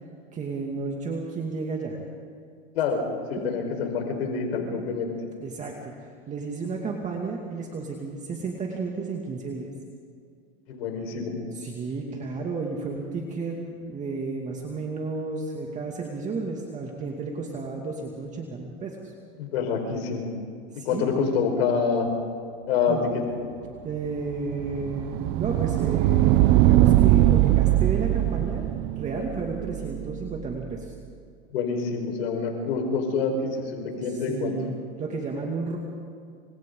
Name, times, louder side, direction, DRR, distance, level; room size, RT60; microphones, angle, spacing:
voice 1, 0.3-2.0 3.4-3.5 4.8-4.9 5.4-9.7 11.6-19.1 20.7-21.1 22.9-23.0 23.8-30.9 34.3-35.8, right 4 dB, 25° right, 0 dB, 2.4 m, -32 dB
voice 2, 3.3-5.1 10.7-11.4 19.4-20.3 20.8-22.1 22.7-23.0 31.5-34.5, left 5 dB, 85° left, 2 dB, 5.0 m, -26 dB
sound 1, 23.9-30.8, right 15 dB, 50° right, 0.8 m, -22 dB
28.5 x 26.0 x 3.9 m, 2.3 s
supercardioid pair, 140°, 30 cm